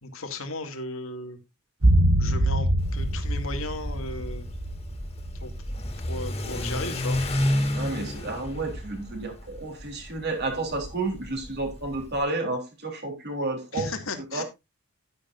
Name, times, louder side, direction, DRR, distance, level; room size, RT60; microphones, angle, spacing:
voice 1, 0.0-1.4 2.2-4.5 5.4-5.5 6.1-7.2 13.7-14.4, left 2 dB, 65° left, 2.2 m, -35 dB
sound 1, 1.8-6.1 6.3-6.4, right 1 dB, 65° right, 1.9 m, -24 dB
Car / Accelerating revving vroom, 2.8-12.2, left 1 dB, 30° left, 2.5 m, -31 dB
voice 2, 7.8-13.9 14.3-14.4, right 2 dB, 50° right, 3.5 m, -31 dB
11.5 x 10.0 x 2.6 m
head